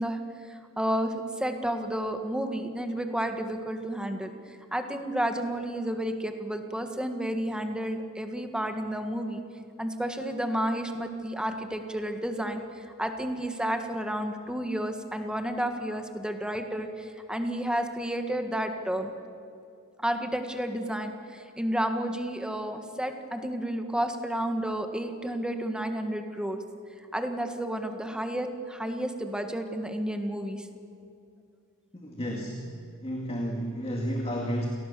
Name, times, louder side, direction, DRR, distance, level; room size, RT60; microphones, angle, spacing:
voice 1, 0.0-9.4 9.8-19.1 20.0-26.6 27.1-30.7, right 1 dB, 5° right, 6 dB, 1.6 m, -31 dB
voice 2, 31.9-32.6 33.0-34.7, equal, 25° left, 1 dB, 2.1 m, -31 dB
28.5 x 18.0 x 6.9 m, 2.4 s
head